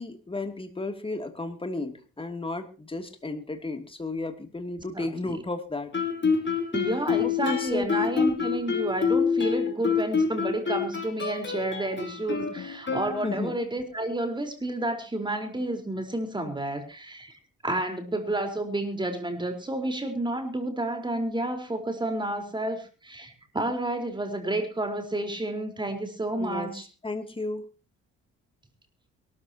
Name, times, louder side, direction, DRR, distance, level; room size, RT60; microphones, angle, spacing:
voice 1, 0.0-5.9 7.2-7.9 13.2-13.5 26.4-27.7, left 2 dB, 20° left, 5 dB, 2.9 m, -33 dB
voice 2, 4.9-5.3 6.7-17.3 17.6-26.8, right 1 dB, 15° right, 5 dB, 4.5 m, -30 dB
Guitar, 5.9-13.6, left 6 dB, 40° left, 4.5 m, -27 dB
23.0 x 13.5 x 3.0 m, 0.34 s
cardioid pair, 90°, 30 cm